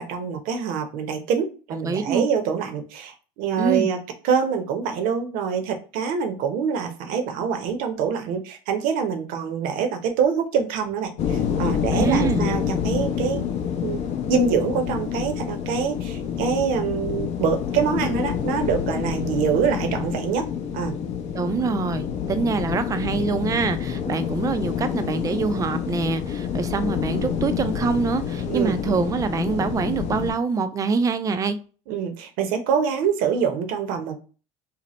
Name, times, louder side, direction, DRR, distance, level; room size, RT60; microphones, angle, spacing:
voice 1, 0.0-4.0 4.2-13.5 13.8-14.0 14.3-20.4 20.7-20.9 28.4-28.8 31.9-34.2, right 6 dB, 60° right, 0.7 m, -25 dB
voice 2, 1.7-2.2 3.6-3.9 11.9-12.4 21.3-31.6, right 4 dB, 20° right, 0.4 m, -25 dB
sound 1, 11.2-30.3, left 8 dB, 45° left, 0.6 m, -27 dB
2.8 x 2.0 x 3.0 m
hypercardioid pair, 90°, 16 cm